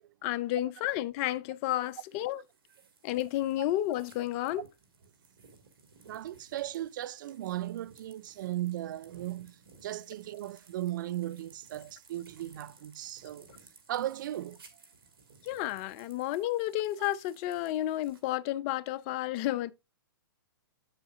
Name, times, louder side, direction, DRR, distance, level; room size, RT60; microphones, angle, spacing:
voice 1, 0.2-2.4 3.0-4.6 15.4-19.7, left 14 dB, 35° left, 0.5 m, -31 dB
sound 1, 1.8-18.4, right 4 dB, 80° right, 2.5 m, -60 dB
voice 2, 6.0-13.5 13.9-14.6, right 13 dB, 60° right, 0.5 m, -37 dB
8.8 x 7.5 x 2.6 m
hypercardioid pair, 130°, 12 cm